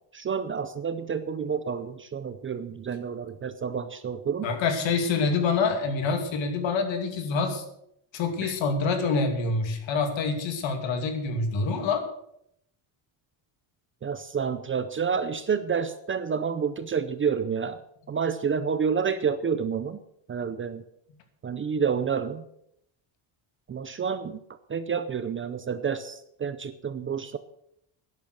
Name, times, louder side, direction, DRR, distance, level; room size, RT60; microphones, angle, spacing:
voice 1, 0.1-4.5 8.4-8.5 14.0-17.8 18.1-20.0 20.3-20.8 21.4-22.4 23.7-24.4 24.7-27.4, right 6 dB, 25° right, 11 dB, 0.5 m, -29 dB
voice 2, 4.4-7.6 8.1-12.1, left 4 dB, 65° left, 6 dB, 2.6 m, -26 dB
11.5 x 10.5 x 6.5 m, 0.74 s
cardioid pair, 170°, 48 cm